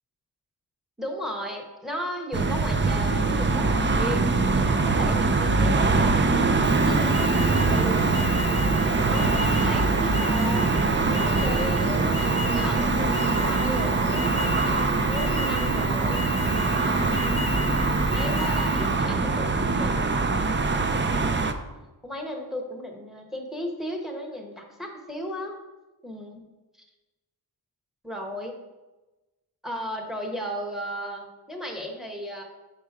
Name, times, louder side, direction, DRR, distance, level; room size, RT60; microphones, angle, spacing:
voice 1, 1.0-8.0 8.9-9.3 9.6-16.2 16.6-17.7 18.1-21.6 22.0-25.6 26.0-26.4 28.0-28.5 29.6-32.4, equal, ahead, 1 dB, 1.0 m, -35 dB
sound 1, 2.3-21.5, right 3 dB, 30° right, 0.4 m, -23 dB
Alarm, 6.6-19.0, left 3 dB, 15° left, 0.6 m, -36 dB
5.5 x 5.0 x 4.7 m, 1.1 s
wide cardioid pair, 135°, 40 cm